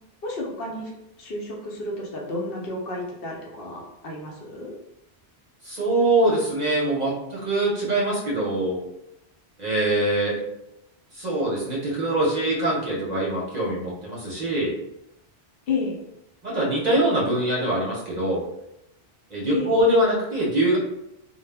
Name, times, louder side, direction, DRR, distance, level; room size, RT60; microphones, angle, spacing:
voice 1, 0.2-4.8 15.7-16.0 19.5-19.7, left 3 dB, 70° left, -2 dB, 0.8 m, -31 dB
voice 2, 5.6-8.8 9.6-10.4 11.2-14.7 16.4-18.5 19.3-20.8, right 1 dB, 50° right, -4 dB, 0.7 m, -23 dB
2.1 x 2.0 x 3.3 m, 0.85 s
omnidirectional pair, 1.1 m